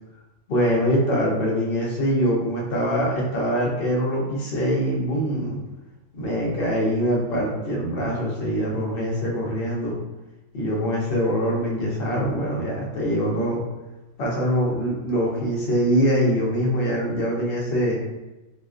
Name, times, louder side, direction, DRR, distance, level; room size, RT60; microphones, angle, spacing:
voice 1, 0.5-5.6 6.1-10.0 10.5-13.6 14.2-18.0, equal, 55° left, -3 dB, 0.8 m, -23 dB
2.4 x 2.2 x 2.4 m, 1.0 s
omnidirectional pair, 1.3 m